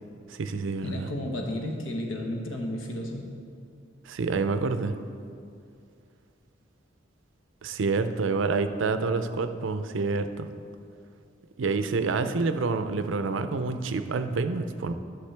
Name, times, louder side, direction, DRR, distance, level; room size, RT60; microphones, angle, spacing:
voice 1, 0.3-1.1 4.1-4.9 7.6-10.5 11.6-14.9, right 4 dB, 80° right, 9 dB, 0.5 m, -28 dB
voice 2, 0.8-3.3, left 1 dB, 90° left, 1 dB, 1.2 m, -33 dB
11.5 x 6.4 x 3.3 m, 2.4 s
head